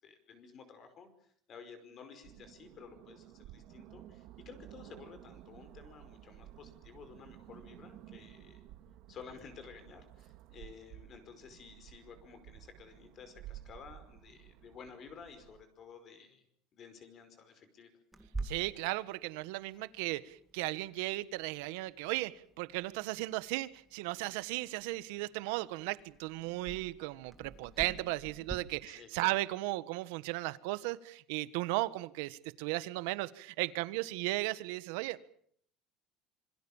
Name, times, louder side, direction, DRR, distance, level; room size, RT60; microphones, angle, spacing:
voice 1, 0.0-1.1 1.5-8.7 9.1-16.5 16.7-17.9 28.9-29.3, left 6 dB, 35° left, 10 dB, 5.1 m, -53 dB
sound 1, 2.2-15.6, right 13 dB, 55° right, 1.8 m, -54 dB
Clock, 18.1-28.5, right 2 dB, 5° right, 2.2 m, -49 dB
voice 2, 18.4-35.2, right 19 dB, 80° right, 15 dB, 1.4 m, -36 dB
26.5 x 24.0 x 7.3 m, 0.65 s
cardioid pair, 160°, 0 cm